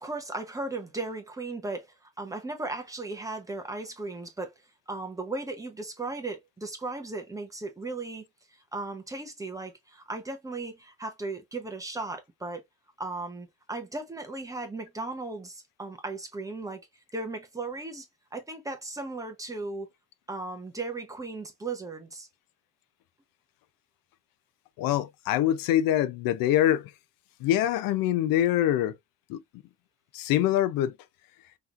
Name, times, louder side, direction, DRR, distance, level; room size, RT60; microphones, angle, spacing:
voice 1, 0.0-4.5 4.9-12.6 13.0-16.8 17.1-19.9 20.3-22.3, right 3 dB, 10° right, 0.8 m, -36 dB
voice 2, 24.8-26.9 27.4-29.0 29.3-29.4 30.1-30.9, left 12 dB, 70° left, 0.6 m, -24 dB
5.6 x 3.0 x 2.5 m
cardioid pair, 175°, 35 cm